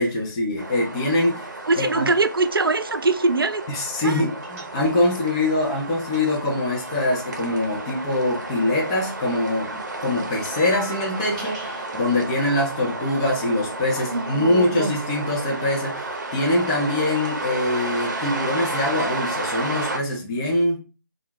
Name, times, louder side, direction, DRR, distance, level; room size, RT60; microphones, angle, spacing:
voice 1, 0.0-1.5 1.8-2.1 3.7-20.8, left 1 dB, 15° left, 0.5 m, -24 dB
sound 1, 0.6-20.0, right 2 dB, 55° right, 0.7 m, -32 dB
voice 2, 1.7-3.6 4.0-4.2 14.1-15.0, right 3 dB, 85° right, 0.4 m, -22 dB
sound 2, 4.4-5.2 5.4-8.8 9.1-12.0, right 3 dB, 10° right, 1.0 m, -43 dB
2.3 x 2.0 x 3.8 m
figure-of-eight pair, 155°, 12 cm